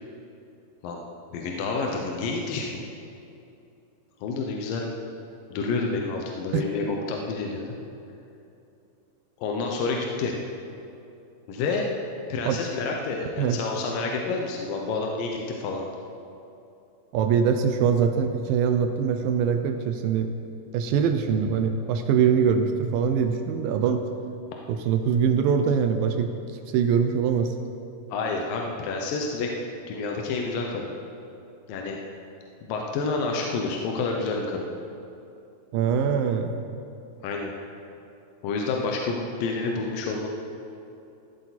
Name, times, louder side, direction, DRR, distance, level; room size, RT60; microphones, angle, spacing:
voice 1, 1.3-2.9 4.2-4.9 5.5-7.7 9.4-10.3 11.5-11.9 12.3-15.8 28.1-29.5 29.9-30.9 31.7-32.0 32.7-34.7 37.2-37.5 38.4-40.3, left 4 dB, 70° left, 0 dB, 2.3 m, -29 dB
voice 2, 17.1-20.3 20.7-24.1 24.7-26.3 26.7-27.5 35.7-36.5, right 7 dB, 80° right, 7 dB, 2.1 m, -23 dB
15.0 x 12.0 x 4.2 m, 2.7 s
omnidirectional pair, 4.7 m